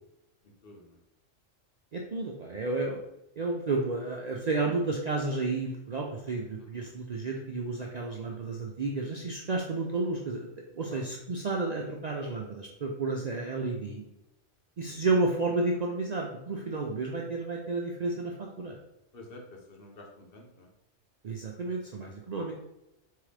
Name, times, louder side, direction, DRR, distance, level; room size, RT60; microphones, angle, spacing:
voice 1, 0.6-1.0 6.6-7.0 10.9-11.0 14.9-15.0 16.5-16.8 19.1-20.7, left 2 dB, 50° left, 1 dB, 0.9 m, -50 dB
voice 2, 1.9-3.0 3.4-10.5 10.7-14.0 14.8-18.8 21.2-22.5, right 3 dB, 75° right, 0 dB, 0.3 m, -31 dB
3.8 x 3.7 x 3.3 m, 0.90 s
omnidirectional pair, 1.3 m